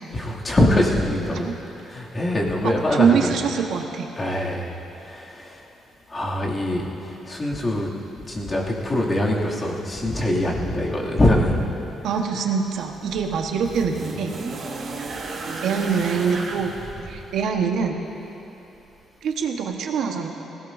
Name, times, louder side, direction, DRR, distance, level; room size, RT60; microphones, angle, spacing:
voice 1, 0.1-1.5 1.9-3.3 4.2-4.7 5.0-5.6 6.1-6.9 7.3-7.9 8.3-11.6, left 1 dB, 30° left, -4 dB, 2.5 m, -23 dB
voice 2, 2.6-4.1 12.0-14.3 15.6-16.7 17.0-18.0 19.2-20.3, right 6 dB, 75° right, 3 dB, 1.3 m, -24 dB
sound 1, 12.6-17.8 18.9-19.0, right 3 dB, 60° right, 2.4 m, -34 dB
19.5 x 17.5 x 2.7 m, 3.0 s
cardioid pair, 90°, 0 cm